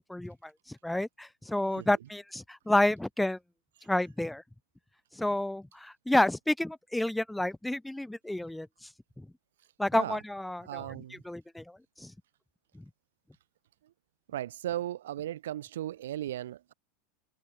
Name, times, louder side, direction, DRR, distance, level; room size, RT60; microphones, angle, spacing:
voice 1, 0.0-3.4 3.9-4.4 5.1-8.9 9.2-9.3 9.8-10.9 11.3-12.1 12.7-12.9, left 1 dB, 5° left, 3.6 m, -30 dB
voice 2, 10.6-11.2 14.3-16.7, right 12 dB, 80° right, 1.3 m, -36 dB
open air
hypercardioid pair, 110°, 0 cm